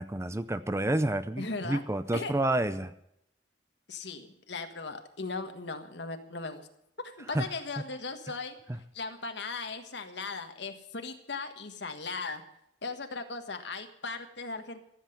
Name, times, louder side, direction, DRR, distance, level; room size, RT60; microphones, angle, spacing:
voice 1, 0.0-2.9 7.3-7.5 8.7-8.8, right 1 dB, 15° right, 12 dB, 0.5 m, -29 dB
voice 2, 1.4-1.8 2.1-2.3 3.9-6.7 7.0-8.6 8.9-12.4 12.8-14.8, left 3 dB, 65° left, 7 dB, 1.5 m, -38 dB
14.5 x 8.0 x 9.3 m, 0.76 s
head